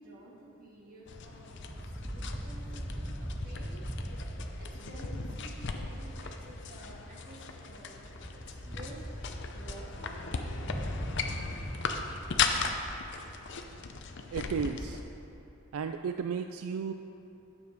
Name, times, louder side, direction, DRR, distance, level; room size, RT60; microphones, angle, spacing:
voice 1, 0.0-3.1 3.4-3.8 4.6-7.9 8.5-9.0 9.5-10.3, right 1 dB, 40° right, -4 dB, 1.8 m, -51 dB
sound 1, 1.1-15.0, left 5 dB, 50° left, 0.6 m, -37 dB
sound 2, 1.5-7.1 7.6-7.7 8.0-13.5, equal, 5° right, 0.4 m, -41 dB
voice 2, 14.3-15.0 15.7-16.9, right 6 dB, 75° right, 7 dB, 0.3 m, -34 dB
9.5 x 7.1 x 5.1 m, 3.0 s
head